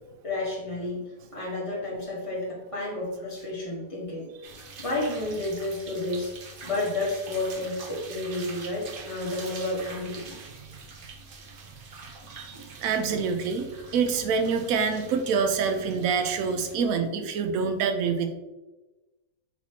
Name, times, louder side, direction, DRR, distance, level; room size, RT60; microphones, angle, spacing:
voice 1, 0.2-4.3 4.8-6.3 6.6-10.4 13.1-13.2, left 2 dB, 25° left, -5 dB, 1.2 m, -31 dB
sound 1, 4.4-16.8, right 4 dB, 55° right, 0.6 m, -45 dB
voice 2, 12.3-18.3, right 5 dB, 70° right, 6 dB, 1.0 m, -26 dB
4.2 x 4.1 x 2.8 m, 1.1 s
omnidirectional pair, 1.6 m